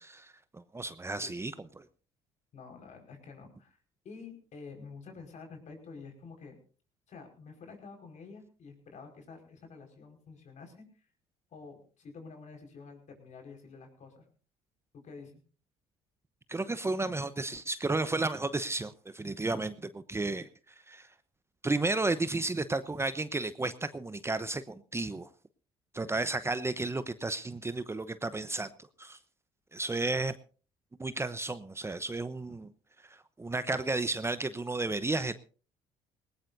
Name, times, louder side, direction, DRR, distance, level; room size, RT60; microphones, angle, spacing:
voice 1, 0.1-1.8 16.5-20.5 20.9-21.1 21.6-25.3 25.9-28.7 29.0-29.2 29.7-30.3 31.0-32.7 33.4-35.4, right 2 dB, 20° right, 13 dB, 0.9 m, -33 dB
voice 2, 2.5-3.8 4.0-6.6 7.1-10.9 11.5-14.3 14.9-15.4, left 4 dB, 55° left, 4 dB, 5.3 m, -49 dB
19.5 x 18.5 x 2.7 m, 0.38 s
supercardioid pair, 75°, 15 cm